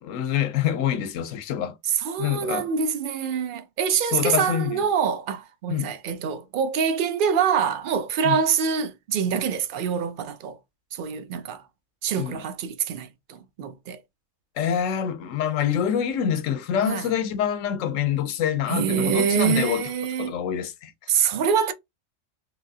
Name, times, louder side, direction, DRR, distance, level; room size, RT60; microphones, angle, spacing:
voice 1, 0.0-1.8 2.2-2.7 4.1-4.8 5.7-5.9 8.2-8.4 12.2-12.4 14.6-19.9 20.2-20.9, left 9 dB, 80° left, 1.0 m, -26 dB
voice 2, 1.9-10.6 10.9-11.6 12.0-14.0 16.8-17.1 18.7-20.4 21.1-21.7, right 7 dB, 60° right, 0.5 m, -25 dB
3.3 x 2.7 x 2.6 m
omnidirectional pair, 1.3 m